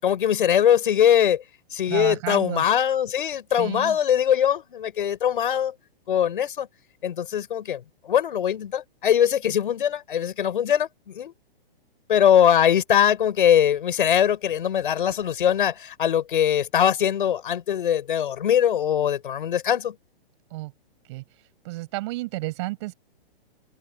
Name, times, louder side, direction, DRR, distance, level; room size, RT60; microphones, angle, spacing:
voice 1, 0.0-1.4 1.7-5.7 6.1-6.7 7.0-11.3 12.1-20.0, left 9 dB, 55° left, 6.1 m, -21 dB
voice 2, 1.9-2.6 3.6-4.0 20.5-20.7 21.0-21.2 21.6-22.9, right 21 dB, 30° right, 6.9 m, -31 dB
hypercardioid pair, 175°, 30 cm